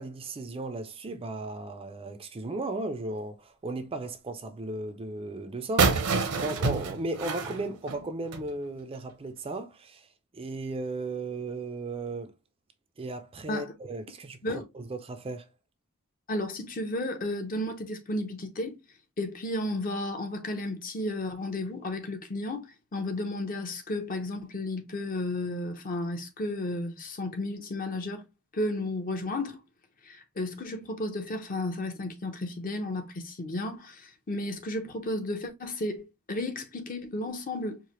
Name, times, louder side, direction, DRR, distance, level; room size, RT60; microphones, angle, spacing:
voice 1, 0.0-10.1 10.3-12.4 13.0-15.5, right 2 dB, 25° right, 0.4 m, -36 dB
sound 1, 5.8-8.5, right 4 dB, 75° right, 0.7 m, -27 dB
voice 2, 16.3-18.8 19.2-22.6 22.9-28.2 28.5-29.6 30.0-37.8, left 1 dB, 40° left, 0.7 m, -33 dB
4.7 x 2.1 x 2.9 m
head